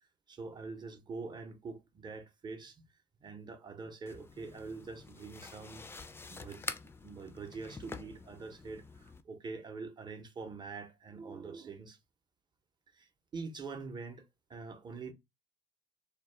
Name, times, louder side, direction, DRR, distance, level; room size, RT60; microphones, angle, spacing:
voice 1, 0.3-2.9 3.2-5.9 6.3-6.7 7.0-12.0 12.9-14.2 14.5-15.1, right 4 dB, 30° right, 0.7 m, -45 dB
sound 1, 4.1-9.2, left 4 dB, 15° left, 0.3 m, -47 dB
2.3 x 2.1 x 3.1 m
supercardioid pair, 75°, 14 cm